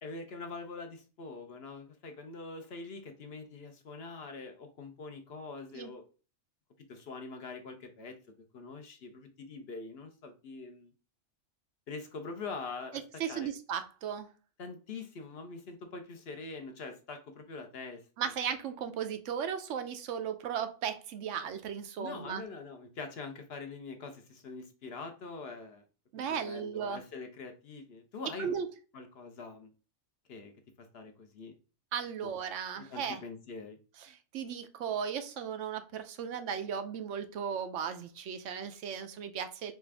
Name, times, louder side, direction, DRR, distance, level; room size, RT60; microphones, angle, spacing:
voice 1, 0.0-6.0 6.9-8.2 8.5-10.9 11.9-13.0 13.3-13.5 14.6-18.3 22.0-25.8 26.3-28.5 28.9-29.7 30.3-30.5 30.8-31.6 32.2-32.3 32.7-33.8, left 4 dB, 60° left, 1.0 m, -44 dB
voice 2, 13.2-14.3 18.2-22.4 26.1-27.0 28.4-28.7 31.9-33.2 34.0-39.7, right 7 dB, 90° right, 1.0 m, -36 dB
4.3 x 2.5 x 3.3 m
omnidirectional pair, 1.2 m